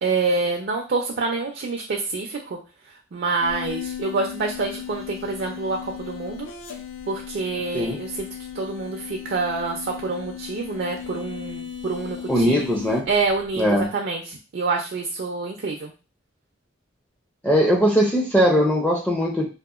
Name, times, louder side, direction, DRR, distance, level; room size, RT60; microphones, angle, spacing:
voice 1, 0.0-2.6 2.9-6.5 7.1-8.3 8.5-12.7 13.1-15.9, right 3 dB, 55° right, 1 dB, 0.4 m, -27 dB
sound 1, 3.4-13.8, left 9 dB, 75° left, 0.5 m, -37 dB
voice 2, 12.3-13.0 13.6-13.9 17.4-19.5, equal, 5° left, -1 dB, 0.4 m, -20 dB
2.8 x 2.4 x 2.4 m, 0.32 s
head